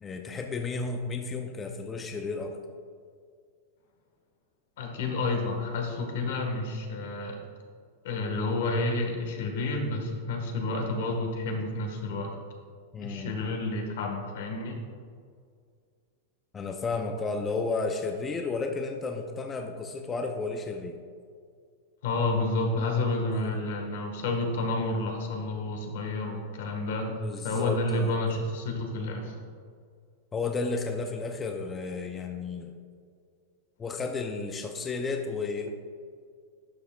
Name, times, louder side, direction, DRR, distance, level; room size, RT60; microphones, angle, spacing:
voice 1, 0.0-2.6 12.9-13.3 16.5-21.0 22.8-22.9 23.3-23.6 27.1-28.2 30.3-32.8 33.8-35.7, left 4 dB, 15° left, 3 dB, 0.4 m, -33 dB
voice 2, 4.8-7.4 8.0-12.3 13.0-14.8 22.0-27.1 27.4-29.4, left 2 dB, 70° left, 2 dB, 1.4 m, -30 dB
11.5 x 5.8 x 2.3 m, 2.1 s
supercardioid pair, 145°, 0 cm